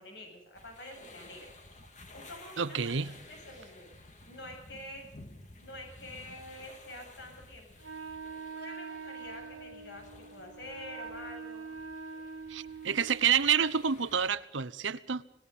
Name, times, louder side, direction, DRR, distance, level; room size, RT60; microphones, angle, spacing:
voice 1, 0.0-1.5 2.1-3.9 4.3-5.1 5.6-7.7 8.5-11.7, left 1 dB, 60° left, 3 dB, 7.8 m, -47 dB
sound 1, 0.5-14.3, left 2 dB, 35° left, 2.5 m, -54 dB
voice 2, 2.6-3.1 12.5-15.2, right 7 dB, 70° right, 16 dB, 0.8 m, -28 dB
Wind instrument woodwind instrument, 7.8-13.3, right 5 dB, 85° right, 2.0 m, -44 dB
26.0 x 19.5 x 5.6 m, 0.74 s
head